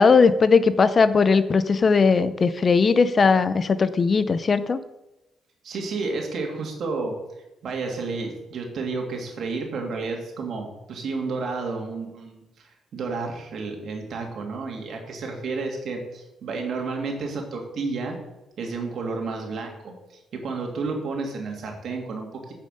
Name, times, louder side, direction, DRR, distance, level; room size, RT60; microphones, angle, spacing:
voice 1, 0.0-4.8, left 5 dB, 40° left, 14 dB, 0.6 m, -18 dB
voice 2, 5.6-7.1 7.6-18.2 18.6-22.5, right 4 dB, 60° right, 2 dB, 2.7 m, -31 dB
9.6 x 6.5 x 6.7 m, 0.96 s
cardioid pair, 90°, 0 cm